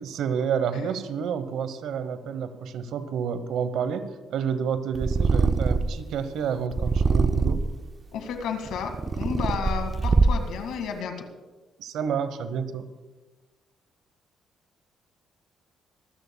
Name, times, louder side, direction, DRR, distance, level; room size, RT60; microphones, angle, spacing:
voice 1, 0.0-7.7 11.8-12.9, right 7 dB, 80° right, 12 dB, 1.0 m, -29 dB
Purr, 5.0-6.0 6.7-7.8 8.5-10.6, right 4 dB, 25° right, 0.5 m, -23 dB
voice 2, 8.1-11.3, left 7 dB, 85° left, 6 dB, 1.9 m, -32 dB
25.0 x 14.0 x 2.3 m, 1.2 s
cardioid pair, 150°, 0 cm